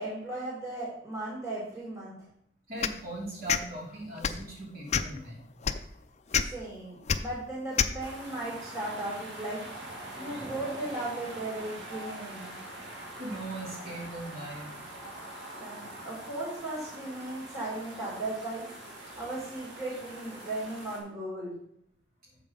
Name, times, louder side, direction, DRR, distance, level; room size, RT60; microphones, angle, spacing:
voice 1, 0.0-2.1 6.5-9.6 10.2-12.6 15.5-18.7 19.2-21.6, right 2 dB, 15° right, -6 dB, 2.1 m, -36 dB
voice 2, 2.7-5.4 13.0-14.7, right 2 dB, 50° right, -4 dB, 3.0 m, -39 dB
sound 1, 2.8-3.0 3.5-3.6 4.2-4.4 4.9-5.2 5.6-5.8 6.3-6.4 7.1-7.2 7.8-7.9, left 7 dB, 35° left, 0.4 m, -26 dB
sound 2, 8.0-21.0, right 1 dB, 75° right, 2.0 m, -44 dB
7.1 x 5.4 x 5.3 m, 0.70 s
head